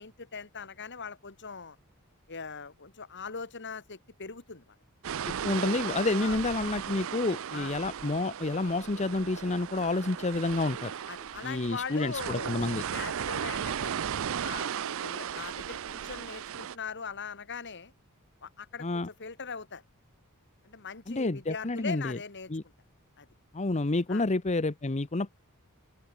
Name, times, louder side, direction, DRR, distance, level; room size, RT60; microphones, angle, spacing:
voice 1, 0.0-1.8 2.3-4.8 5.8-6.4 7.5-7.7 11.1-12.5 12.9-13.9 14.4-17.9 18.4-19.8 20.6-22.5 23.2-23.3 24.1-24.2, left 5 dB, 55° left, 2.1 m, -41 dB
sound 1, 5.0-16.8, right 8 dB, 65° right, 0.5 m, -36 dB
voice 2, 5.3-10.9 11.4-12.8 18.8-19.1 21.1-22.2 22.5-22.6 23.5-25.4, left 2 dB, 30° left, 0.8 m, -29 dB
open air
head